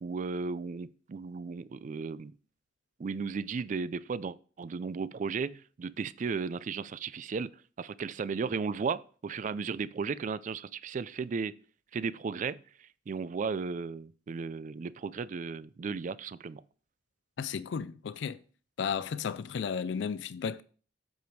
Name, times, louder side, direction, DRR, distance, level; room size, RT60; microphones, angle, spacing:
voice 1, 0.0-2.3 3.0-7.5 7.8-11.5 11.9-16.6, right 5 dB, 40° right, 0.3 m, -35 dB
voice 2, 17.4-18.4 18.8-20.6, left 6 dB, 65° left, 0.4 m, -34 dB
7.9 x 5.1 x 4.6 m
head